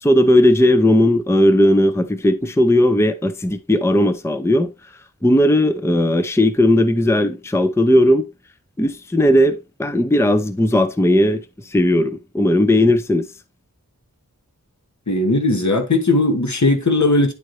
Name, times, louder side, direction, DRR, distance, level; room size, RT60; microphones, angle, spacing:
voice 1, 0.0-4.7 5.2-8.3 8.8-13.3, left 1 dB, 10° left, 0.6 m, -16 dB
voice 2, 15.1-17.3, left 2 dB, 55° left, 1.3 m, -17 dB
9.8 x 3.9 x 3.1 m
wide cardioid pair, 45°, 34 cm